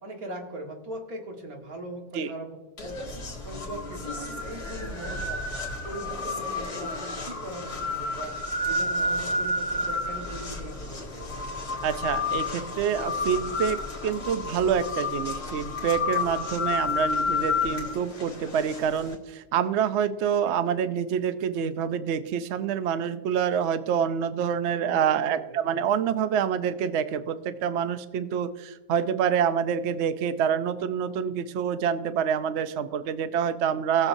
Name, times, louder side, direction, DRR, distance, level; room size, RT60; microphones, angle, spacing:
voice 1, 0.0-2.6 2.8-3.1 3.4-5.4 5.8-8.3 8.7-11.3 24.7-25.2 25.5-25.9, right 1 dB, 55° right, 1 dB, 2.1 m, -40 dB
sound 1, 2.8-19.1, left 3 dB, 60° left, 2.6 m, -31 dB
voice 2, 11.8-34.1, right 8 dB, 85° right, 11 dB, 0.6 m, -27 dB
20.0 x 7.2 x 2.7 m, 1.2 s
omnidirectional pair, 1.9 m